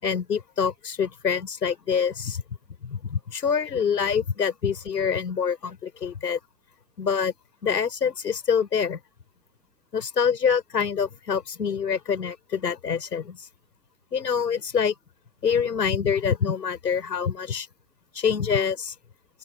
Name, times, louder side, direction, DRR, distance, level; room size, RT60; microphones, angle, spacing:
voice 1, 0.0-2.4 2.8-6.4 7.0-7.3 7.6-9.0 9.9-13.5 14.1-14.9 15.4-17.7 18.1-18.9, left 7 dB, 85° left, 6.4 m, -25 dB
open air
hypercardioid pair, 130°, 48 cm